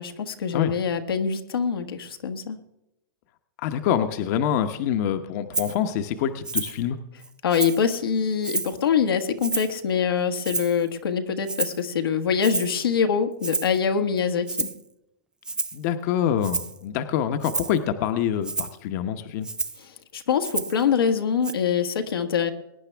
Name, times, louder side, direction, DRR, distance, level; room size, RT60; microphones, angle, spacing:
voice 1, 0.0-2.6 7.4-14.7 20.1-22.5, left 7 dB, 85° left, 6 dB, 1.4 m, -24 dB
voice 2, 3.6-7.0 15.7-19.5, left 9 dB, 50° left, 8 dB, 0.9 m, -26 dB
Rattle (instrument), 5.5-5.8 6.4-6.8 7.2-7.9 8.4-8.8 9.4-9.8 10.4-10.9 11.5-11.8 12.4-12.8 13.4-13.8 14.5-14.8 15.4-15.8 16.4-16.8 17.4-17.8 18.4-18.8 19.4-19.8 20.4-20.8 21.4-21.5, right 3 dB, 5° right, 0.4 m, -30 dB
21.5 x 9.8 x 3.4 m, 0.85 s
hypercardioid pair, 130°, 12 cm